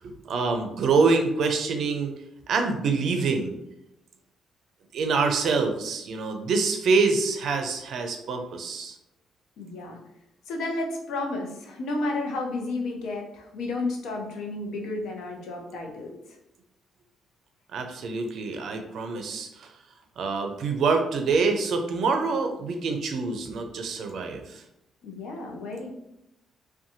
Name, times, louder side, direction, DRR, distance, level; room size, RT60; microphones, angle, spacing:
voice 1, 0.0-2.1 2.5-3.6 4.9-9.0 17.7-19.7 20.2-24.6, right 4 dB, 65° right, 5 dB, 0.4 m, -26 dB
voice 2, 9.6-10.0 10.5-16.2 25.0-25.9, left 2 dB, 80° left, 1 dB, 0.6 m, -32 dB
2.7 x 2.2 x 2.6 m, 0.83 s
cardioid pair, 90°, 0 cm